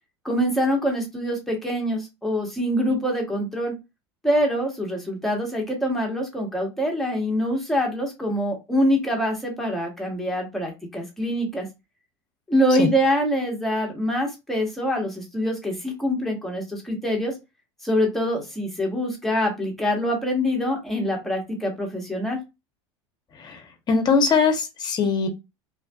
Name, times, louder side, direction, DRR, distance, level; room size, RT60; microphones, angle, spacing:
voice 1, 0.2-3.8 4.2-11.7 12.5-17.4 17.8-22.4, equal, ahead, 1.1 m, -25 dB
voice 2, 23.9-25.3, left 5 dB, 30° left, 0.8 m, -21 dB
2.6 x 2.4 x 2.3 m
supercardioid pair, 100°, 14 cm